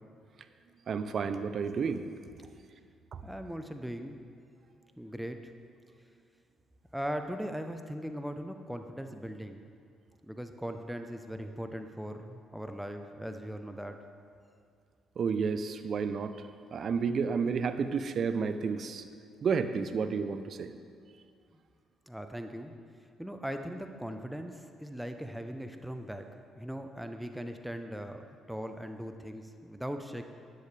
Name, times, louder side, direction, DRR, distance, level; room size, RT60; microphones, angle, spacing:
voice 1, 0.9-2.1 15.2-16.3 16.7-19.0 19.4-20.7, right 5 dB, 55° right, 10 dB, 0.6 m, -31 dB
voice 2, 3.2-4.2 5.0-5.5 6.0-6.1 6.9-9.6 10.2-14.0 21.5-21.6 22.1-22.7 23.2-26.3 26.5-30.2, equal, 5° right, 6 dB, 0.8 m, -39 dB
12.5 x 10.5 x 3.4 m, 2.3 s
hypercardioid pair, 55°, 0 cm